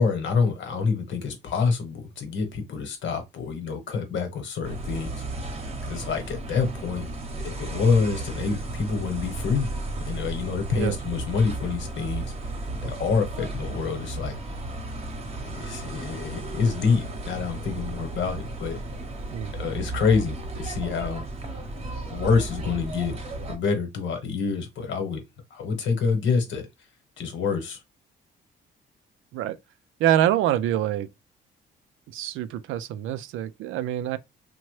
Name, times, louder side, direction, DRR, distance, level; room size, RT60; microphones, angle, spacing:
voice 1, 0.0-5.2 5.8-7.1 7.4-9.7 10.0-12.2 12.8-14.4 15.5-18.8 19.6-21.7 22.1-23.1 23.5-25.2 25.5-26.7 27.2-27.8, left 5 dB, 70° left, 1.1 m, -27 dB
sound 1, 4.6-23.6, right 2 dB, 30° right, 0.8 m, -34 dB
voice 2, 30.0-31.1 32.1-34.2, right 11 dB, 85° right, 0.4 m, -25 dB
2.9 x 2.2 x 3.1 m
cardioid pair, 90°, 20 cm